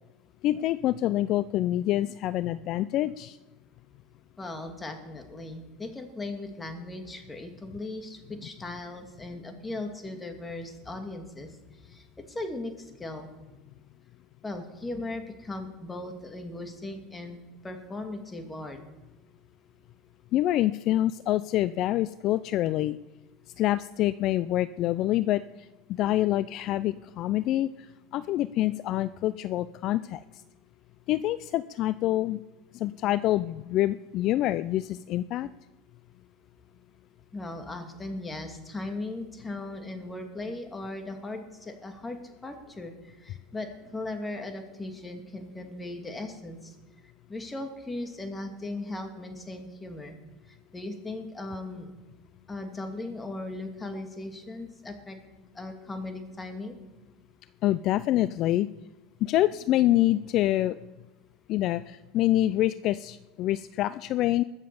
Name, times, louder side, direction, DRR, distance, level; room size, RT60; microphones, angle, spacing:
voice 1, 0.4-3.4 20.3-23.0 23.6-27.9 28.1-30.2 31.1-32.4 32.7-35.5 57.6-58.7 59.2-60.8 61.5-64.4, left 14 dB, 50° left, 15 dB, 0.4 m, -26 dB
voice 2, 4.4-13.3 14.4-18.8 37.3-46.8 47.3-50.1 50.5-51.9 52.5-55.2 55.5-56.8, left 2 dB, 15° left, 5 dB, 2.5 m, -38 dB
21.0 x 7.4 x 7.0 m, 1.1 s
supercardioid pair, 105°, 0 cm